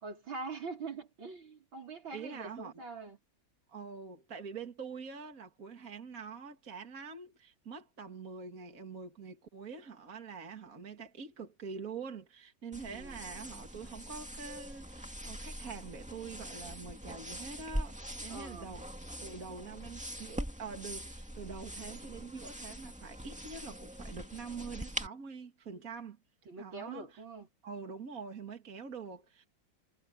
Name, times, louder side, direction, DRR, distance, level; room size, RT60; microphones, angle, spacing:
voice 1, 0.0-3.2 12.9-13.2 18.3-18.7 26.5-27.5, right 4 dB, 75° right, 5.5 m, -44 dB
voice 2, 2.1-2.7 3.7-18.9 19.2-26.2 26.6-27.2 27.6-29.5, right 5 dB, 45° right, 2.5 m, -45 dB
sound 1, 12.7-25.1, equal, 5° right, 2.2 m, -43 dB
omnidirectional pair, 2.2 m